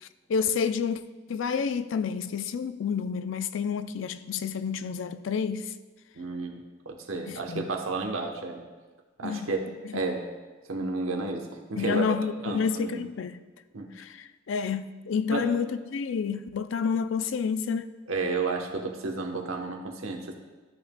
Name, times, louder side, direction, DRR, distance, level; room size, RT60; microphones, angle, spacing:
voice 1, 0.3-1.0 1.3-5.7 7.3-7.7 9.2-9.5 11.8-13.4 14.0-17.9, left 6 dB, 70° left, 0.4 m, -29 dB
voice 2, 6.1-6.6 6.9-8.6 9.2-10.2 10.7-12.0 12.4-13.0 13.7-14.0 15.3-15.5 18.1-20.3, right 3 dB, 85° right, 1.0 m, -32 dB
13.5 x 5.9 x 2.2 m
head